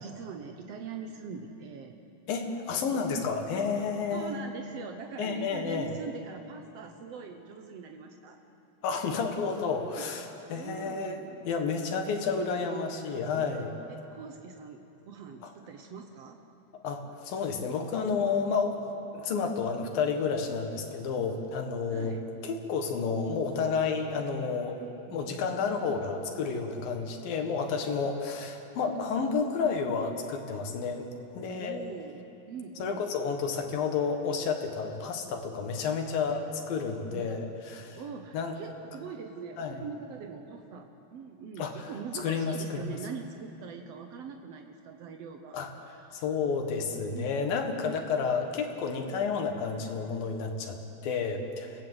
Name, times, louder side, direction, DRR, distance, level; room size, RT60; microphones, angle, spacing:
voice 1, 0.0-2.0 4.1-8.4 10.0-10.1 10.5-11.5 12.0-12.1 13.9-16.4 21.9-22.2 24.8-25.7 31.4-32.2 32.5-33.0 37.1-37.5 38.0-45.6 45.9-46.2 47.1-47.5, right 5 dB, 85° right, 4 dB, 1.4 m, -43 dB
voice 2, 2.3-4.3 5.2-6.0 8.8-13.8 15.4-15.5 16.8-18.8 19.1-24.8 25.1-31.1 31.3-31.8 32.8-38.0 38.3-38.5 39.6-39.8 41.6-42.9 45.5-45.7 46.1-51.8, left 5 dB, 70° left, 4 dB, 3.2 m, -31 dB
28.5 x 18.0 x 8.0 m, 2.9 s
omnidirectional pair, 4.5 m